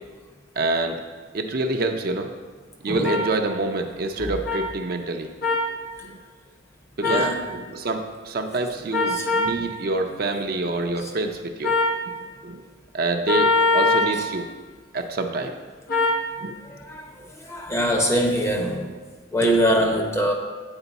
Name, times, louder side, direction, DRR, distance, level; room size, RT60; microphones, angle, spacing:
voice 1, 0.6-1.0 1.3-2.3 2.8-5.3 6.0-6.2 7.0-11.8 12.4-12.6 12.9-14.5 14.9-15.5 16.4-16.6, right 2 dB, 50° right, 4 dB, 0.5 m, -26 dB
sound 1, 3.0-3.2 4.5-4.6 5.4-5.7 7.0-7.3 8.9-9.5 11.6-12.0 13.3-14.1 15.9-16.2, left 3 dB, 45° left, 1.0 m, -21 dB
voice 2, 7.0-7.5 9.1-9.3 11.0-11.1 14.1-14.2 16.6-19.0 19.3-20.3, equal, 15° left, 1 dB, 0.7 m, -24 dB
8.9 x 4.4 x 4.0 m, 1.4 s
head